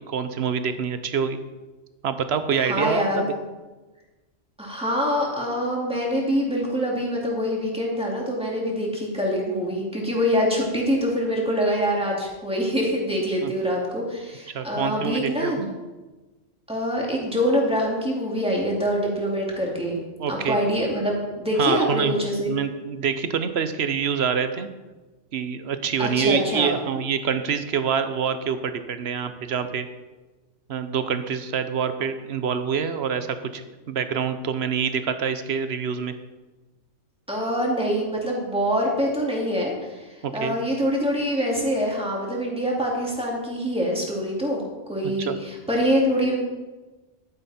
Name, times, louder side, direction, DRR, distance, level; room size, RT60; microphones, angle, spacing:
voice 1, 0.0-1.4 2.0-3.2 13.4-13.5 14.5-15.7 20.2-20.6 21.6-22.1 22.5-24.7 25.3-29.9 30.7-36.1 40.2-40.6 45.2-45.4, right 7 dB, 60° right, 10 dB, 1.0 m, -26 dB
voice 2, 2.6-3.3 4.6-15.7 16.7-20.0 20.3-22.6 26.0-26.7 37.3-44.6 44.9-46.3, equal, 5° right, -3 dB, 2.5 m, -25 dB
11.5 x 9.8 x 4.3 m, 1.2 s
omnidirectional pair, 1.3 m